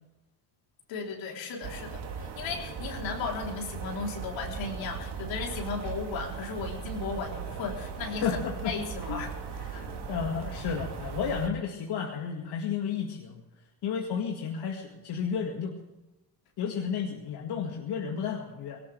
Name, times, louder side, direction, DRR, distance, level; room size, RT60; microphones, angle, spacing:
voice 1, 0.9-9.7, left 4 dB, 75° left, 0 dB, 3.9 m, -36 dB
sound 1, 1.6-11.5, right 6 dB, 60° right, 2.6 m, -38 dB
voice 2, 8.2-8.7 9.1-9.2 9.7-13.4 13.8-15.8 16.6-18.8, left 7 dB, 60° left, 0 dB, 2.1 m, -32 dB
18.5 x 18.0 x 3.5 m, 1.0 s
supercardioid pair, 85°, 46 cm